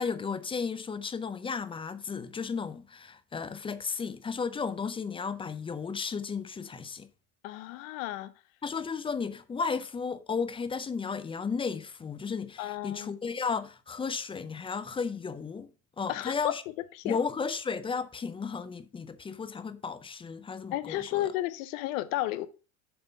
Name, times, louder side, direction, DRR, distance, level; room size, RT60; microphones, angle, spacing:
voice 1, 0.0-7.1 8.6-15.7 16.0-16.6 17.0-21.3, left 5 dB, 15° left, 0.4 m, -34 dB
voice 2, 7.4-8.3 12.6-13.1 16.1-16.5 17.0-17.2 20.7-22.5, left 15 dB, 65° left, 0.8 m, -32 dB
6.8 x 3.5 x 5.2 m
hypercardioid pair, 90°, 41 cm